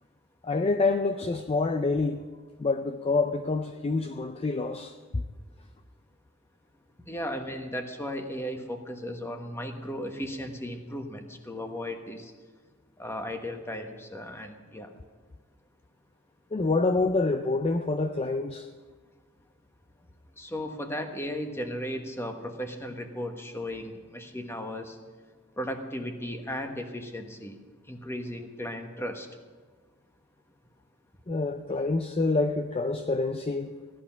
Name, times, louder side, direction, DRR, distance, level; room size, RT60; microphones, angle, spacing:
voice 1, 0.4-2.2 2.6-5.2 16.5-18.6 31.3-33.7, left 3 dB, 30° left, 7 dB, 0.5 m, -27 dB
voice 2, 7.1-12.3 13.0-14.9 20.4-25.0 25.6-27.6 27.9-29.3, equal, 10° left, 5 dB, 1.2 m, -36 dB
15.5 x 11.5 x 5.8 m, 1.4 s
head